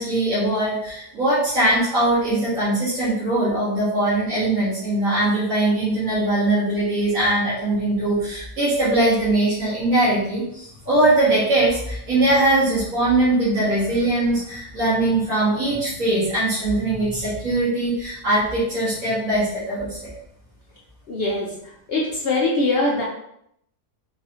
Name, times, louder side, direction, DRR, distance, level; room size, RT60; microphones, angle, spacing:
voice 1, 0.0-20.1, right 1 dB, 50° right, -12 dB, 1.7 m, -21 dB
voice 2, 21.1-23.0, left 2 dB, 90° left, -4 dB, 0.5 m, -23 dB
3.9 x 2.7 x 2.8 m, 0.75 s
omnidirectional pair, 1.8 m